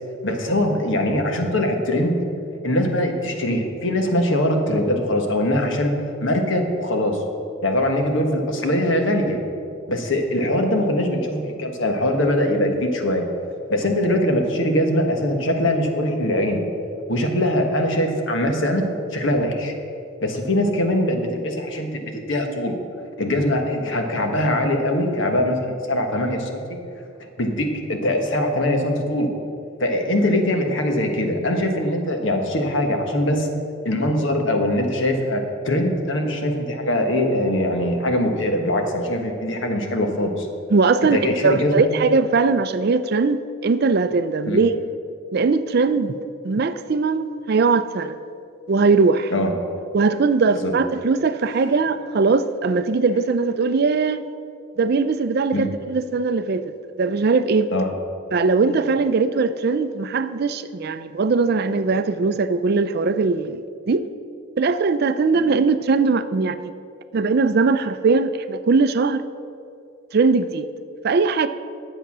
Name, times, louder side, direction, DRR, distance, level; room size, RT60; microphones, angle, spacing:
voice 1, 0.2-2.2 2.6-5.9 6.2-7.2 7.6-9.4 9.9-13.3 13.7-16.6 17.1-18.8 19.1-19.7 20.2-22.8 23.2-26.6 27.2-29.3 29.8-33.5 33.8-40.5 41.1-41.9 44.5-44.6 49.3-49.5 50.6-50.7 55.5-55.7 57.7-57.9 58.7-58.8, left 1 dB, 65° left, 4 dB, 1.4 m, -22 dB
voice 2, 40.7-44.8 45.3-46.1 46.4-48.2 48.7-49.3 49.9-54.2 54.8-56.6 57.0-57.7 58.3-64.1 64.6-66.7 67.1-69.2 70.1-70.7 71.0-71.5, right 4 dB, 50° right, 12 dB, 0.4 m, -20 dB
11.0 x 7.9 x 6.1 m, 2.5 s
head